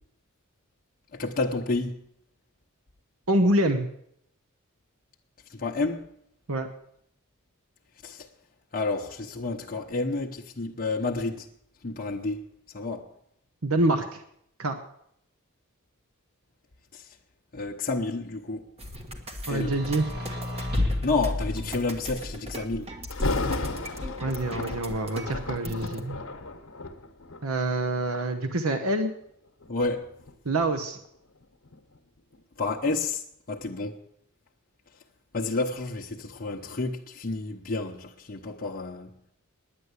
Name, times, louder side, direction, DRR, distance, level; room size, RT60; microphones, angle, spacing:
voice 1, 1.1-2.0 5.5-6.1 8.0-8.3 8.7-11.5 11.8-12.4 12.7-13.1 16.9-17.0 17.5-18.7 19.5-19.8 21.0-22.9 29.7-30.1 32.6-33.2 33.5-34.0 35.3-39.1, left 3 dB, 40° left, 0.9 m, -30 dB
voice 2, 3.3-3.9 6.5-6.7 13.6-14.2 14.6-14.8 19.5-20.1 24.2-26.2 27.4-29.1 30.4-31.0, right 1 dB, 70° right, 1.0 m, -26 dB
sound 1, 18.8-26.0, equal, 30° right, 1.5 m, -39 dB
sound 2, 19.5-22.3 23.2-24.1, left 2 dB, 50° right, 2.7 m, -32 dB
Thunder, 23.1-28.1 28.7-29.0 29.6-32.4 32.7-32.8, left 2 dB, 65° left, 1.2 m, -34 dB
9.9 x 9.5 x 8.2 m
head